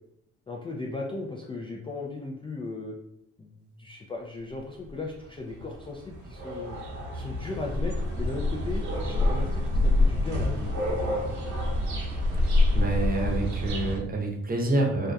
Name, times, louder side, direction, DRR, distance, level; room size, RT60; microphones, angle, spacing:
voice 1, 0.5-2.9 3.4-6.8 7.1-11.2, left 3 dB, 15° left, -1 dB, 0.3 m, -37 dB
sound 1, 4.9-5.0 5.4-14.0, left 2 dB, 60° right, 0.8 m, -26 dB
voice 2, 12.7-15.1, right 2 dB, 25° right, 0 dB, 0.8 m, -27 dB
2.6 x 2.1 x 2.2 m, 0.76 s
hypercardioid pair, 45°, 32 cm